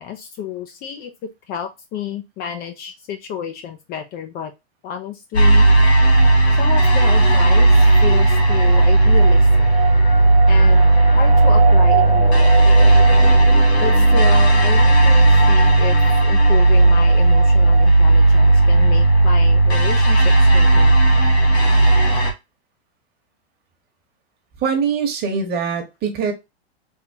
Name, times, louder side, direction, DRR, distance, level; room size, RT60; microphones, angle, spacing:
voice 1, 0.0-4.5 4.8-5.7 6.5-9.7 10.5-10.9 11.1-12.7 13.8-16.0 16.2-20.9, left 8 dB, 30° left, 0.5 m, -30 dB
Dark Hopeful Ambience, 5.3-22.3, right 2 dB, 85° left, 1.7 m, -13 dB
voice 2, 24.6-26.3, right 6 dB, 30° right, 1.2 m, -22 dB
3.7 x 2.9 x 2.8 m
hypercardioid pair, 120°, 31 cm